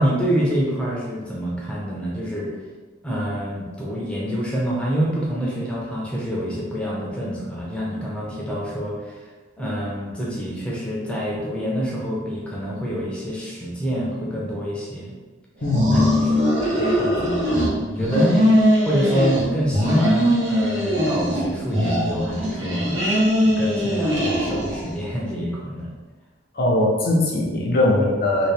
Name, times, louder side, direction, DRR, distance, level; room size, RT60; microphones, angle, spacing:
voice 1, 0.0-2.5 3.0-9.2 9.6-15.2 15.9-18.4 18.8-25.9, equal, 5° left, -5 dB, 0.7 m, -26 dB
voice 2, 15.6-16.0 26.6-28.5, left 1 dB, 50° left, -1 dB, 0.6 m, -20 dB
sound 1, 15.6-17.7 18.0-19.5 19.7-21.4 21.7-24.9, equal, 80° right, 1.1 m, -20 dB
2.9 x 2.8 x 3.3 m, 1.3 s
head